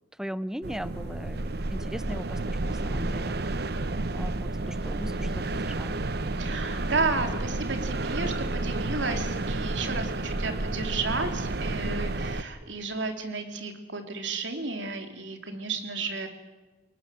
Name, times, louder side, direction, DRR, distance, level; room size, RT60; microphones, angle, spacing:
voice 1, 0.2-6.0, equal, 5° right, 15 dB, 0.7 m, -39 dB
sound 1, 0.6-12.4, right 2 dB, 60° right, 1.0 m, -31 dB
voice 2, 6.4-16.3, right 3 dB, 75° right, 6 dB, 2.9 m, -32 dB
28.5 x 18.5 x 7.6 m, 1.2 s
head